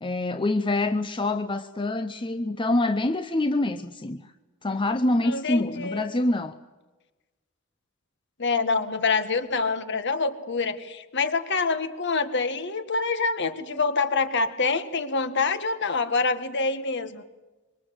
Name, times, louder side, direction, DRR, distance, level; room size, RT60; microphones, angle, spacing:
voice 1, 0.0-4.3 4.6-6.5, left 2 dB, 25° left, 8 dB, 0.8 m, -26 dB
voice 2, 5.2-6.1 8.4-17.2, left 4 dB, 55° left, 9 dB, 1.8 m, -26 dB
25.0 x 23.5 x 7.9 m, 1.2 s
head